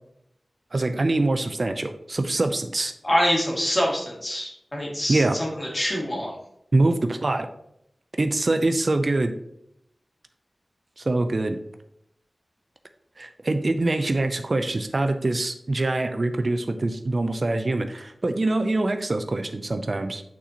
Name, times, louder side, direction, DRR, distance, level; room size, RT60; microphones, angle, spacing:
voice 1, 0.7-2.9 5.1-5.4 6.7-7.5 8.2-9.4 11.0-11.6 13.2-20.2, right 2 dB, 55° right, 8 dB, 0.5 m, -24 dB
voice 2, 3.0-6.3, equal, 35° left, -2 dB, 2.1 m, -25 dB
8.3 x 4.2 x 2.9 m, 0.77 s
wide cardioid pair, 55°, 0 cm